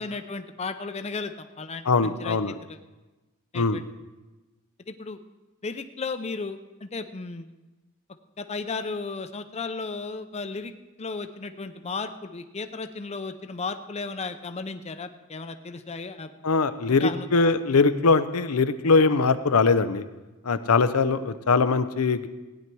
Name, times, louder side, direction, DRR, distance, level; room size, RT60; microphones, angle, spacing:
voice 1, 0.0-2.8 3.5-3.8 4.9-5.2 5.6-7.5 8.4-10.7 11.0-16.3 16.9-17.5, left 4 dB, 30° left, 8 dB, 0.6 m, -35 dB
voice 2, 1.9-2.6 3.5-3.8 16.4-20.0 20.4-22.3, left 4 dB, 90° left, 10 dB, 0.6 m, -21 dB
16.0 x 9.8 x 4.6 m, 1.1 s
head